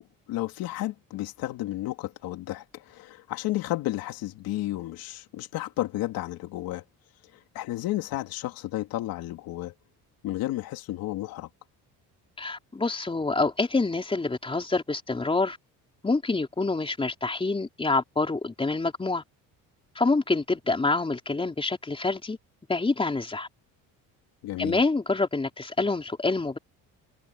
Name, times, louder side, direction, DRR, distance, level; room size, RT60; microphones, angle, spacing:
voice 1, 0.0-6.8 7.3-9.7 10.2-11.5 24.4-24.8, left 16 dB, 85° left, 3.1 m, -32 dB
voice 2, 12.4-15.6 16.0-19.2 20.0-22.4 22.7-23.5 24.6-26.6, left 3 dB, 15° left, 4.0 m, -26 dB
cardioid pair, 140°, 35 cm